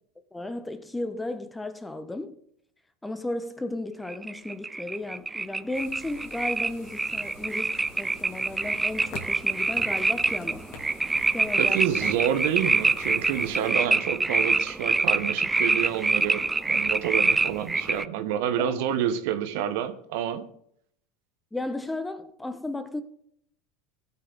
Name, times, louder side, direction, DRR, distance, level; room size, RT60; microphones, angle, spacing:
voice 1, 0.3-2.4 3.0-10.6 11.3-12.1 18.6-19.0 21.5-23.0, left 2 dB, 10° left, 1.1 m, -34 dB
sound 1, 4.1-18.1, right 3 dB, 15° right, 0.4 m, -26 dB
sound 2, 5.7-13.7, left 3 dB, 55° left, 2.7 m, -46 dB
voice 2, 11.6-20.4, right 10 dB, 65° right, 1.3 m, -28 dB
18.0 x 6.3 x 4.1 m
hypercardioid pair, 85°, 0 cm